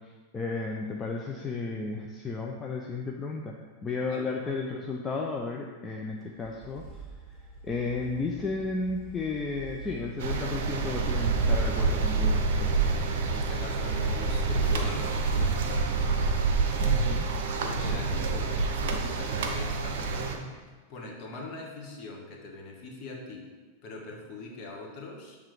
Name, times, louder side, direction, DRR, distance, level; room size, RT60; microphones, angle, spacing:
voice 1, 0.0-6.8 7.6-12.7 16.8-17.3, left 3 dB, 20° left, -1 dB, 0.5 m, -33 dB
sound 1, 6.2-17.0, right 4 dB, 5° right, 1.8 m, -44 dB
sound 2, 10.2-20.4, right 4 dB, 55° right, 0.6 m, -27 dB
voice 2, 13.1-16.0 17.6-20.5 20.9-23.5 23.8-25.4, left 2 dB, 40° left, 0 dB, 1.3 m, -42 dB
7.5 x 3.5 x 4.8 m, 1.4 s
figure-of-eight pair, 90°, 0 cm